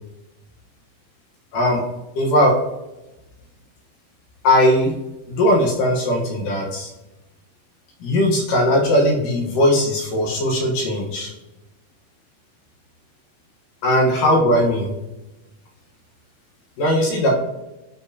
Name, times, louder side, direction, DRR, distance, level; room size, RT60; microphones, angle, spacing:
voice 1, 2.2-2.5 4.4-4.9 5.3-6.9 8.0-11.3 13.8-14.9 16.8-17.3, left 1 dB, 70° left, -1 dB, 2.6 m, -18 dB
12.5 x 4.5 x 2.7 m, 0.98 s
omnidirectional pair, 4.3 m